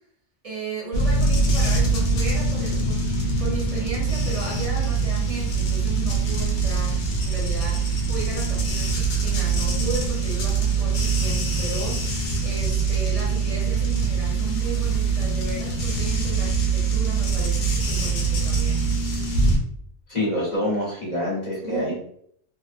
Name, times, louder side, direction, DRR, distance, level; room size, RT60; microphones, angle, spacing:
voice 1, 0.4-18.9 21.6-21.9, right 3 dB, 35° right, -5 dB, 0.9 m, -35 dB
sound 1, 0.9-19.6, right 4 dB, 80° left, 1.0 m, -23 dB
voice 2, 20.1-21.9, left 1 dB, 40° left, -6 dB, 1.2 m, -26 dB
2.9 x 2.1 x 2.5 m, 0.66 s
omnidirectional pair, 1.2 m